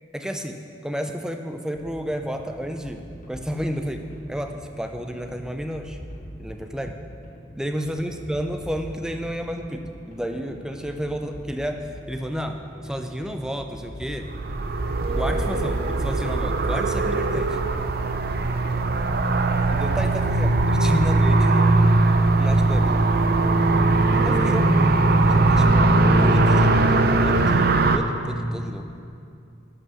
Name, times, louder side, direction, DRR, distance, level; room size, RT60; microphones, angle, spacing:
voice 1, 0.1-6.0 6.4-7.0 7.6-14.3 15.1-17.6 19.7-22.0 22.4-22.9 24.1-24.7 25.3-25.9 26.2-28.9, equal, 5° right, 5 dB, 0.5 m, -31 dB
sound 1, 1.7-17.7, equal, 40° left, 1.4 m, -42 dB
sound 2, 14.3-28.0, right 2 dB, 50° right, 0.5 m, -20 dB
12.5 x 5.6 x 6.3 m, 2.5 s
head